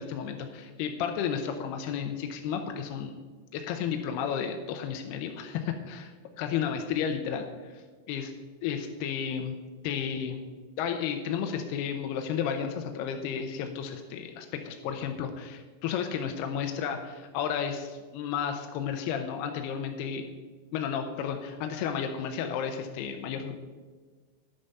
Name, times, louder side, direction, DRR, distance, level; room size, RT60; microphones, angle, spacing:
voice 1, 0.0-3.2 3.5-6.1 6.4-8.3 8.6-9.6 9.8-10.4 10.8-20.3 20.7-23.6, left 7 dB, 75° left, 5 dB, 2.6 m, -32 dB
10.5 x 8.8 x 5.5 m, 1.4 s
omnidirectional pair, 5.1 m